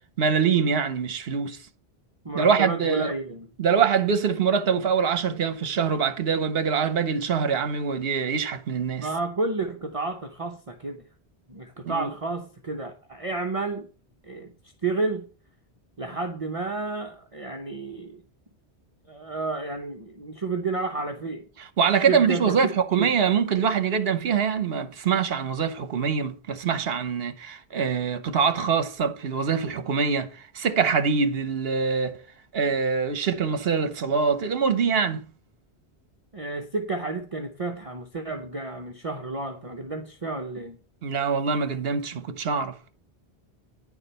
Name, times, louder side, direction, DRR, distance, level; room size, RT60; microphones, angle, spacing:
voice 1, 0.2-1.6 2.3-3.1 3.6-9.1 11.8-12.1 21.6-32.2 32.5-35.2 41.0-42.8, right 6 dB, 65° right, 1.1 m, -24 dB
voice 2, 2.2-3.5 9.0-11.0 11.5-13.9 14.2-14.5 14.8-15.2 16.0-18.2 19.1-21.5 22.1-22.6 23.0-23.1 36.3-40.8, right 3 dB, 35° right, 0.8 m, -31 dB
9.8 x 4.8 x 5.4 m
omnidirectional pair, 1.1 m